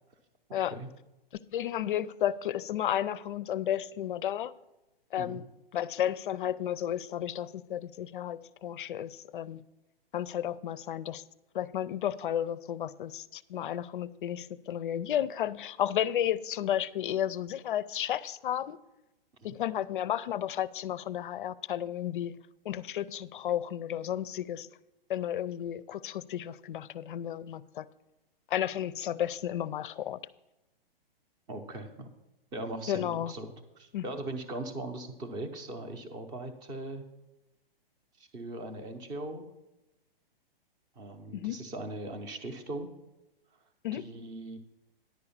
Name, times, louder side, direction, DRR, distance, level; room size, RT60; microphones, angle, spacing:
voice 1, 1.5-4.5 5.1-5.4 5.7-9.6 10.1-11.2 11.5-18.8 19.4-22.3 22.7-24.7 25.1-27.9 28.5-30.2 32.9-33.3 33.9-34.1 41.3-41.6 43.8-44.1, left 11 dB, 60° left, 18 dB, 0.5 m, -32 dB
voice 2, 31.5-32.1 32.5-37.0 38.2-39.5 41.0-42.9 43.9-44.6, right 2 dB, 15° right, 7 dB, 0.6 m, -39 dB
10.5 x 4.8 x 7.1 m, 0.96 s
hypercardioid pair, 150°, 30 cm